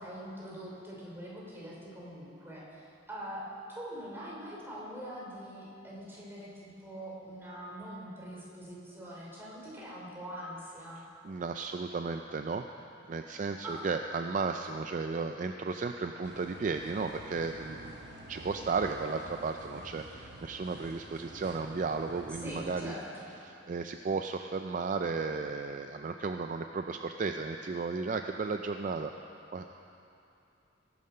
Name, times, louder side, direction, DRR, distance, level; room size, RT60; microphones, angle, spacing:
voice 1, 0.0-3.4 3.7-11.0 13.6-13.8 22.4-23.4, equal, 10° right, -5 dB, 2.8 m, -43 dB
voice 2, 11.0-12.7 13.1-18.0 18.3-22.9 23.4-29.1 29.5-29.7, right 4 dB, 45° right, 6 dB, 0.4 m, -34 dB
sound 1, 16.2-22.7, right 1 dB, 60° right, 1.0 m, -48 dB
19.5 x 7.5 x 5.5 m, 2.7 s
head